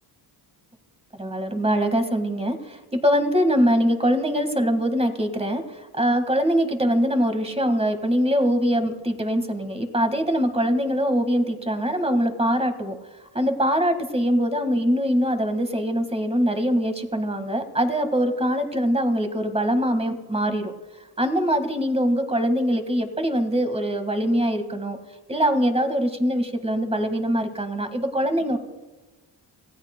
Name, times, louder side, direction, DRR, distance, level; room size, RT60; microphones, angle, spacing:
voice 1, 1.1-13.0 13.3-20.7 21.2-25.0 25.3-28.6, equal, 15° right, 7 dB, 1.6 m, -23 dB
28.5 x 16.5 x 2.2 m, 1.2 s
cardioid pair, 110°, 46 cm